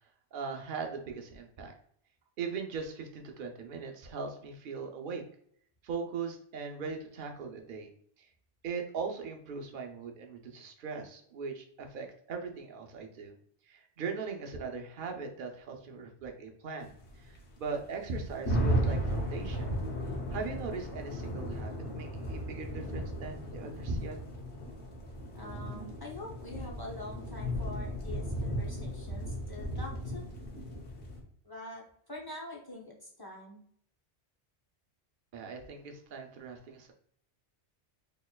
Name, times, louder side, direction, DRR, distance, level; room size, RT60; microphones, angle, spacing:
voice 1, 0.3-1.7 2.4-5.2 5.8-7.9 8.2-8.3 8.6-13.3 13.7-19.7 20.3-24.2 35.3-36.9, right 4 dB, 55° right, 3 dB, 0.7 m, -39 dB
sound 1, 16.8-31.2, equal, 70° left, 1.2 m, -35 dB
voice 2, 25.3-30.2 31.4-33.6, left 1 dB, 25° left, -3 dB, 0.6 m, -45 dB
4.2 x 3.1 x 2.2 m, 0.64 s
omnidirectional pair, 1.2 m